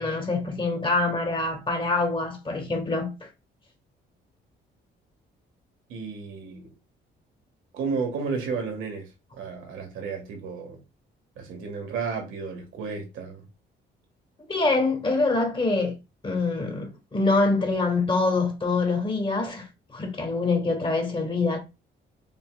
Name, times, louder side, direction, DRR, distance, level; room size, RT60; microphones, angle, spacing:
voice 1, 0.0-3.3 14.5-16.0 16.2-21.6, left 3 dB, 25° left, 1.5 m, -25 dB
voice 2, 5.9-6.7 7.7-9.0 9.3-10.8 11.4-13.4, right 5 dB, 80° right, 1.5 m, -32 dB
5.5 x 3.0 x 2.3 m
cardioid pair, 90°, 20 cm